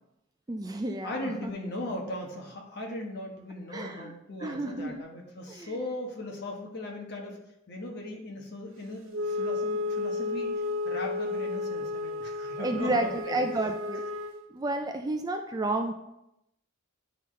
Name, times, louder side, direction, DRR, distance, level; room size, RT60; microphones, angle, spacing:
voice 1, 0.5-1.5 3.7-4.1 4.4-5.0 5.5-5.8 12.6-14.1 14.5-15.9, right 2 dB, 20° right, 5 dB, 0.4 m, -31 dB
voice 2, 1.0-7.4 7.7-13.4, left 1 dB, 50° left, 0 dB, 1.2 m, -38 dB
Wind instrument woodwind instrument, 9.1-14.4, left 3 dB, 65° right, 0.8 m, -32 dB
9.9 x 3.9 x 3.2 m, 0.84 s
head